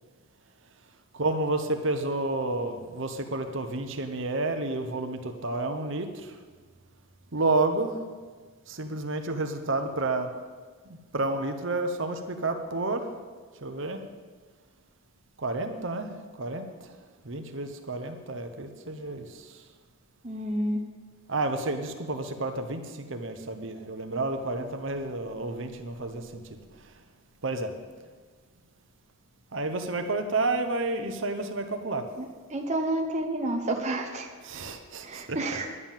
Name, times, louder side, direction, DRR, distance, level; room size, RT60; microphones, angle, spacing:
voice 1, 1.2-6.1 7.3-7.9 8.7-10.3 11.1-13.1 13.6-14.0 15.4-16.1 16.4-16.6 17.3-19.3 21.3-22.8 23.1-26.2 27.4-27.7 29.5-32.0 34.4-35.4, right 2 dB, 55° right, 6 dB, 1.0 m, -30 dB
voice 2, 20.2-20.8 32.2-34.3 35.0-35.8, right 1 dB, 30° right, 3 dB, 0.9 m, -30 dB
11.0 x 9.5 x 7.4 m, 1.5 s
head